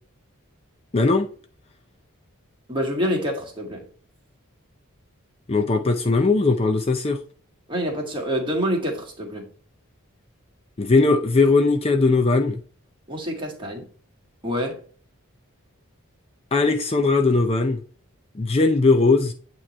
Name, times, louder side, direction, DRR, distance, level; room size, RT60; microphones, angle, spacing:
voice 1, 0.9-1.3 5.5-7.2 10.8-12.6 16.5-17.8 18.3-19.3, left 3 dB, 30° left, 0.5 m, -19 dB
voice 2, 2.7-3.8 7.7-9.5 13.1-13.8 14.4-14.8, equal, 25° right, 1.8 m, -26 dB
8.8 x 3.0 x 4.2 m
head